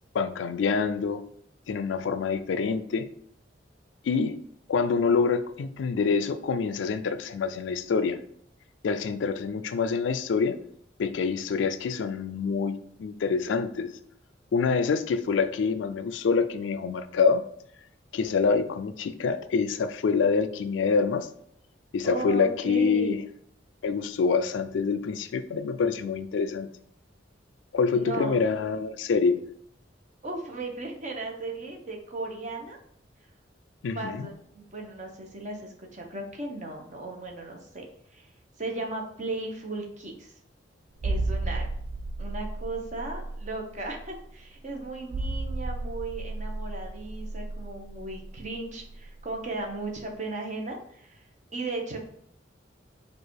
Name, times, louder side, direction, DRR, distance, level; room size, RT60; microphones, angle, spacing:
voice 1, 0.1-1.2 1.7-3.1 4.0-4.4 4.7-8.2 8.8-10.6 11.0-13.9 14.5-17.4 18.1-21.3 21.9-23.2 23.8-26.7 27.7-29.4 33.8-34.3, left 5 dB, 80° left, 11 dB, 0.4 m, -26 dB
voice 2, 22.0-23.2 27.9-28.4 30.2-32.8 33.9-37.8 38.1-38.3 38.6-40.3 41.0-41.7 42.2-51.2 51.5-52.0, right 2 dB, 40° right, 1 dB, 0.9 m, -36 dB
sound 1, 41.0-49.4 49.7-49.8, right 2 dB, 60° right, 0.3 m, -33 dB
4.7 x 2.4 x 4.6 m, 0.70 s
head